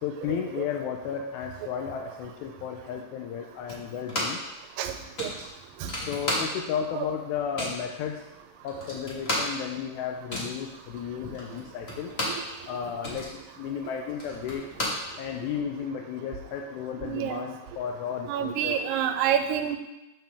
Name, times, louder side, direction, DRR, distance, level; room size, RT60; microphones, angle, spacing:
voice 1, 0.0-4.4 6.1-8.3 8.6-12.1 12.7-13.3 13.6-14.7 15.2-18.8, left 7 dB, 80° left, 2 dB, 1.8 m, -33 dB
sound 1, 3.7-4.5 4.8-4.9 5.2-6.9 7.1-7.9 8.4-8.5 8.7-12.5 12.8-15.6, left 1 dB, 55° left, 0.6 m, -33 dB
voice 2, 17.0-17.4 18.3-19.8, right 9 dB, 85° right, 7 dB, 2.3 m, -27 dB
7.6 x 6.8 x 3.5 m, 0.97 s
omnidirectional pair, 3.9 m